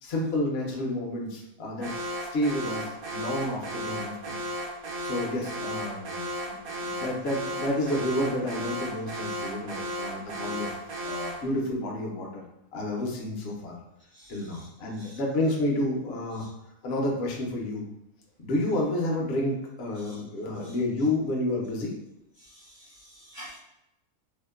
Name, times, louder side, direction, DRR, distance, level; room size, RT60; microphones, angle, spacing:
voice 1, 0.0-2.0 2.3-4.4 5.0-6.6 6.8-10.7 11.0-12.4 12.7-13.8 14.3-16.4 16.8-17.9 18.4-21.9, left 1 dB, 60° left, -1 dB, 0.7 m, -30 dB
Alarm, 1.8-11.5, equal, 85° right, 1.1 m, -35 dB
voice 2, 14.1-14.7 15.0-15.2 16.4-16.5 19.9-20.2 20.6-20.7 22.4-23.6, equal, 60° right, -7 dB, 0.6 m, -49 dB
2.8 x 2.0 x 2.2 m, 0.86 s
omnidirectional pair, 1.5 m